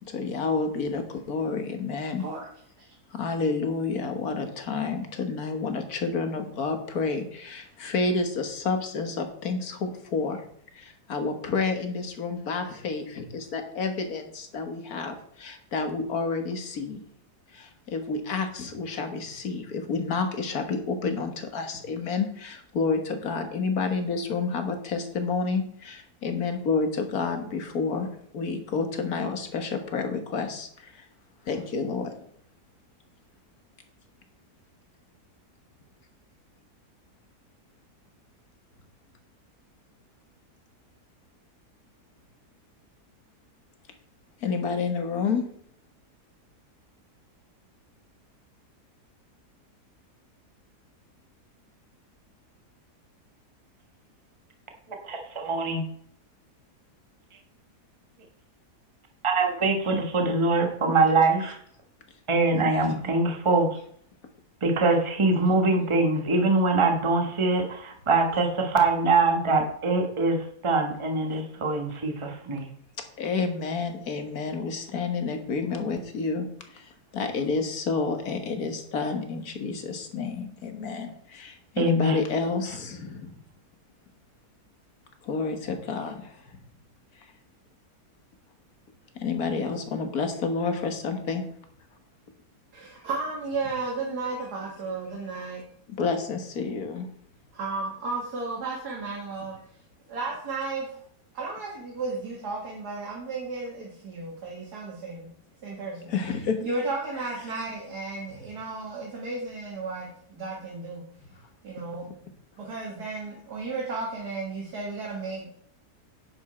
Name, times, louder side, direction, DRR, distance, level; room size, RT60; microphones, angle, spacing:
voice 1, 0.1-2.2 3.1-10.4 10.7-17.0 17.5-28.1 28.3-31.1 31.5-32.1 44.4-45.4 62.6-63.0 73.2-83.3 85.2-86.4 89.2-91.4 96.0-97.1 106.1-106.6, left 4 dB, 65° left, 6 dB, 1.8 m, -29 dB
voice 2, 55.0-55.8 59.2-61.6 62.3-63.7 64.6-72.7 81.8-82.2, right 3 dB, 20° right, 3 dB, 1.2 m, -23 dB
voice 3, 92.7-95.6 97.5-99.6 100.1-101.0 101.3-105.3 105.6-106.1 106.6-111.0 111.6-112.1 112.6-115.6, right 3 dB, 70° right, -3 dB, 2.5 m, -34 dB
10.0 x 7.2 x 4.3 m, 0.64 s
omnidirectional pair, 1.8 m